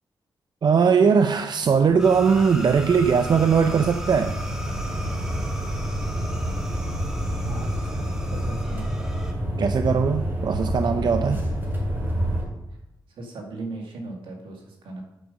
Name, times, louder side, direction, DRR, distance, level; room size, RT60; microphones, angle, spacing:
voice 1, 0.6-4.4 9.6-11.4, right 6 dB, 60° right, 7 dB, 0.6 m, -20 dB
sound 1, 1.8-12.4, equal, 25° right, 4.0 m, -29 dB
sound 2, 2.0-9.3, equal, 5° right, 2.0 m, -39 dB
voice 2, 7.3-9.0 13.1-15.0, right 3 dB, 90° right, 1 dB, 2.0 m, -38 dB
9.1 x 5.3 x 6.4 m, 0.89 s
cardioid pair, 70°, 8 cm